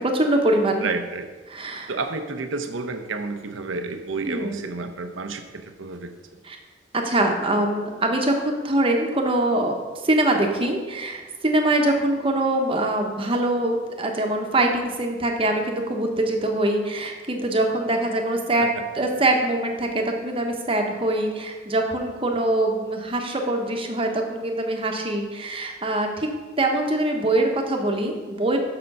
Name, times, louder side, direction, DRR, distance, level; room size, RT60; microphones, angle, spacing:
voice 1, 0.1-0.9 1.5-1.9 4.2-4.6 6.5-6.6 6.9-9.7 10.0-18.7 18.9-26.3 26.6-28.6, right 1 dB, 30° right, 3 dB, 1.0 m, -23 dB
voice 2, 0.8-1.3 1.9-6.1 18.6-18.8, right 3 dB, 85° right, 7 dB, 0.8 m, -30 dB
6.8 x 6.7 x 5.5 m, 1.3 s
head